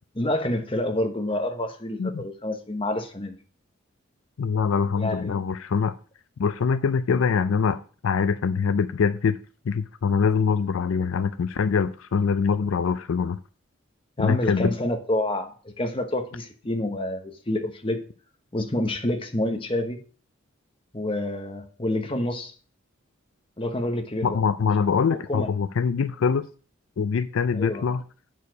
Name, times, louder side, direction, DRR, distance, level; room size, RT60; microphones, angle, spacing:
voice 1, 0.2-3.4 5.0-5.4 14.2-18.0 18.5-20.0 20.9-22.5 23.6-24.4 25.1-25.5 27.5-27.9, left 1 dB, 25° left, 5 dB, 1.0 m, -28 dB
voice 2, 4.4-6.0 6.4-9.4 9.6-13.4 14.2-14.7 24.2-26.5 27.0-28.0, left 6 dB, 75° left, 13 dB, 0.4 m, -24 dB
8.3 x 4.7 x 5.1 m, 0.40 s
head